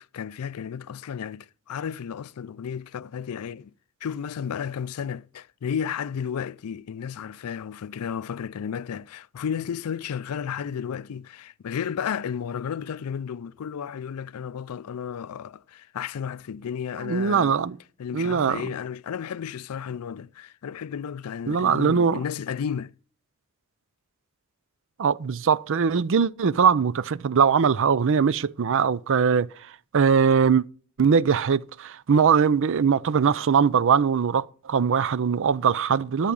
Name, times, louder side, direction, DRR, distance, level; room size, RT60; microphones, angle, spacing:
voice 1, 0.0-3.7 4.0-17.6 18.0-22.9, left 7 dB, 80° left, 0.4 m, -33 dB
voice 2, 17.0-17.8 18.1-18.6 21.5-22.2 25.0-29.5 29.9-30.6 31.0-36.3, right 6 dB, 60° right, 0.5 m, -21 dB
13.5 x 5.7 x 5.2 m
head